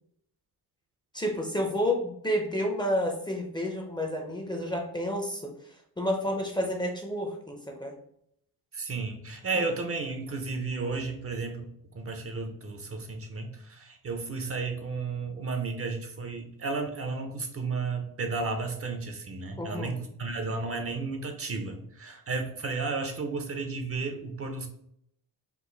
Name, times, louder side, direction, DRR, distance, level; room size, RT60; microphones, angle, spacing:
voice 1, 1.1-5.5 6.0-7.9 19.6-19.9, equal, 10° left, 1 dB, 0.6 m, -30 dB
voice 2, 8.7-11.7 11.9-24.7, right 3 dB, 35° right, 5 dB, 0.6 m, -33 dB
4.6 x 2.5 x 3.9 m, 0.73 s
cardioid pair, 130°, 38 cm